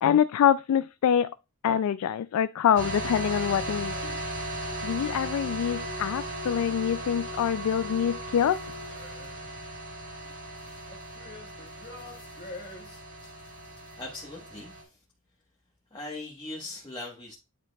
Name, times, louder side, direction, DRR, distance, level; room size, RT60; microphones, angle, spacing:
voice 1, 0.0-1.3 1.6-4.1 4.8-8.6, left 8 dB, 80° left, 0.3 m, -25 dB
sound 1, 2.8-14.8, right 1 dB, 55° right, 2.9 m, -37 dB
Wind instrument woodwind instrument, 4.6-8.9, left 1 dB, 75° right, 2.8 m, -44 dB
sound 2, 8.3-9.6 10.0-14.0, left 2 dB, 50° left, 1.4 m, -48 dB
voice 2, 14.0-15.0 15.9-17.3, left 2 dB, 20° left, 1.3 m, -40 dB
10.0 x 4.5 x 2.3 m
head